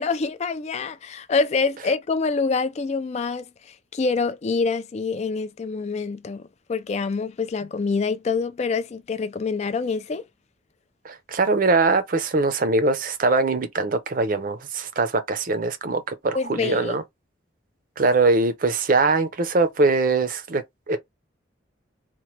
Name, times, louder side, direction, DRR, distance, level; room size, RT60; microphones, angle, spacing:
voice 1, 0.0-6.4 6.7-10.2 16.3-17.0, left 4 dB, 35° left, 0.3 m, -26 dB
voice 2, 11.0-17.0 18.0-21.0, right 3 dB, 45° right, 0.5 m, -22 dB
3.0 x 2.2 x 3.1 m
head